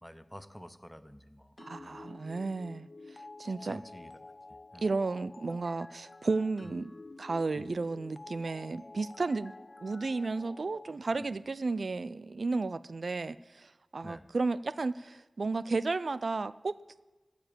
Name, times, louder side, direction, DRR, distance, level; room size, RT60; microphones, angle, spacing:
voice 1, 0.0-2.0 3.6-4.2 4.7-4.9 6.6-6.8 7.6-7.8 11.1-11.4 14.0-14.2, equal, 5° left, 12 dB, 0.7 m, -49 dB
sound 1, 1.6-11.0, left 2 dB, 45° left, 0.4 m, -50 dB
voice 2, 1.6-3.8 4.8-6.9 7.2-9.5 9.8-16.8, right 3 dB, 75° right, 17 dB, 0.3 m, -33 dB
15.0 x 5.1 x 8.6 m, 1.2 s
wide cardioid pair, 75°, 0 cm